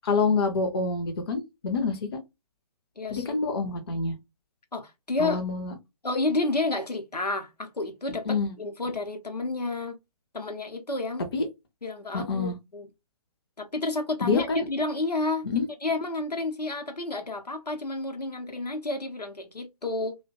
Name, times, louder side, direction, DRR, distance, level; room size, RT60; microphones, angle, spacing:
voice 1, 0.0-2.2 3.1-4.2 5.2-5.7 8.3-8.5 11.3-11.5 12.1-12.5 14.2-14.7 15.4-15.7, left 4 dB, 40° left, 0.6 m, -27 dB
voice 2, 3.0-3.3 4.7-5.4 6.0-10.0 10.3-11.2 11.8-12.9 13.6-15.5 15.8-20.2, left 2 dB, 85° left, 0.8 m, -30 dB
2.4 x 2.2 x 2.4 m
figure-of-eight pair, 140°, 20 cm